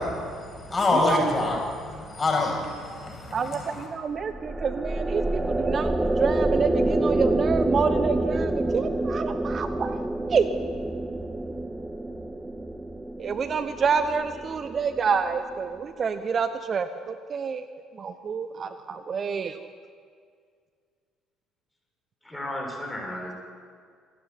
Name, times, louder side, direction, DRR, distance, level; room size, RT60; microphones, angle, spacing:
voice 1, 0.0-3.8, left 2 dB, 25° left, 0 dB, 7.3 m, -27 dB
voice 2, 0.9-1.3 3.3-10.0 10.3-10.5 13.2-17.7 17.9-19.6, right 6 dB, 40° right, 11 dB, 0.9 m, -28 dB
sound 1, 4.1-15.6, right 2 dB, 10° right, 1.1 m, -28 dB
voice 3, 22.2-23.3, left 1 dB, 5° left, -1 dB, 7.2 m, -34 dB
27.0 x 13.0 x 9.6 m, 2.1 s
figure-of-eight pair, 50°, 0 cm